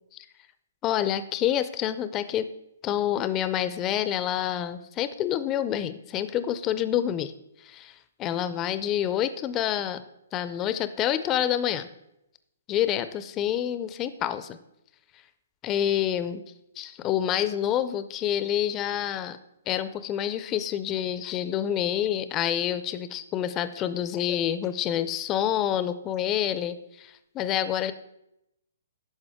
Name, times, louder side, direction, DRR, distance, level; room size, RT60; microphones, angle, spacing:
voice 1, 0.8-2.5 2.8-7.3 7.6-10.0 10.3-11.9 12.7-14.6 15.6-16.4 16.8-19.4 19.7-27.9, left 10 dB, 25° left, 13 dB, 0.4 m, -27 dB
9.8 x 6.3 x 3.6 m, 0.84 s
hypercardioid pair, 135°, 0 cm